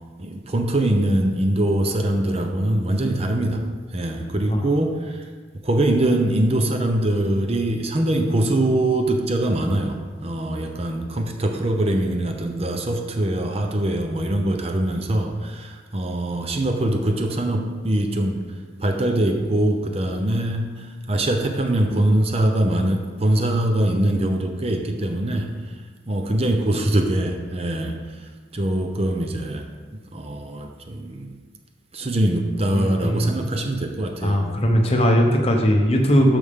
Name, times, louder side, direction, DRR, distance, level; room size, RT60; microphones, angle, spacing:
voice 1, 0.2-3.6 3.9-5.2 5.6-18.4 18.8-25.5 26.1-28.0 28.5-29.7 30.1-31.3 31.9-34.4, right 1 dB, 30° right, 4 dB, 0.7 m, -23 dB
voice 2, 32.7-33.3 34.2-36.4, equal, 30° left, 2 dB, 0.9 m, -19 dB
13.5 x 5.0 x 3.7 m, 1.4 s
head